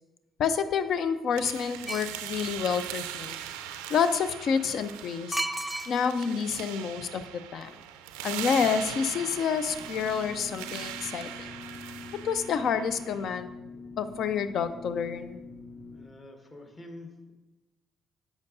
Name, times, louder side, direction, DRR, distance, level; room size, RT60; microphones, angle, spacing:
voice 1, 0.4-3.4 3.9-5.4 5.9-7.2 7.5-7.7 8.2-11.5 12.2-13.5 14.0-15.4, left 6 dB, 55° left, 12 dB, 0.5 m, -28 dB
sound 1, 1.3-13.3, right 10 dB, 75° right, 0.4 m, -40 dB
sound 2, 1.9-2.2 5.3-6.3 6.5-6.6, right 1 dB, 5° right, 0.5 m, -32 dB
sound 3, 9.7-16.0, left 3 dB, 75° left, 2.9 m, -45 dB
voice 2, 15.9-17.3, left 1 dB, 35° left, 4 dB, 1.4 m, -47 dB
10.5 x 7.2 x 2.7 m, 1.1 s
figure-of-eight pair, 45°, 0 cm